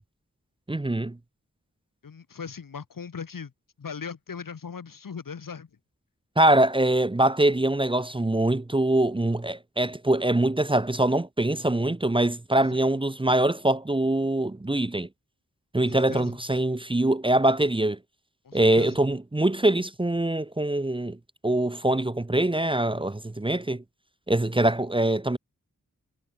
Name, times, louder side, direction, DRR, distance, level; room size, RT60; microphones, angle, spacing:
voice 1, 0.7-1.2 6.4-15.1 15.7-18.0 18.5-21.2 21.4-23.8 24.3-25.4, right 1 dB, 15° right, 0.8 m, -23 dB
voice 2, 2.0-3.5 3.8-5.7 12.7-12.9 15.7-16.3 18.4-19.0, left 6 dB, 85° left, 3.5 m, -39 dB
cardioid pair, 45°, 32 cm